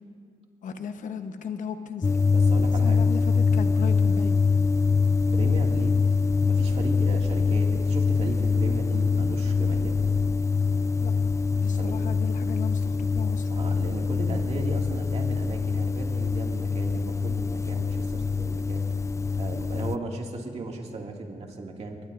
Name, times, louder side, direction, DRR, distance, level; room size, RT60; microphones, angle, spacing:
voice 1, 0.6-2.1 2.8-4.4 11.0-11.1 11.6-13.5, left 7 dB, 70° left, 8 dB, 1.0 m, -36 dB
sound 1, 2.0-20.0, left 4 dB, 20° left, 0.4 m, -24 dB
voice 2, 2.3-3.0 5.3-6.0 6.4-10.0 11.8-11.9 13.5-18.9 19.3-22.0, right 2 dB, 50° right, 1 dB, 2.2 m, -36 dB
22.0 x 21.0 x 2.6 m, 2.1 s
cardioid pair, 70°, 14 cm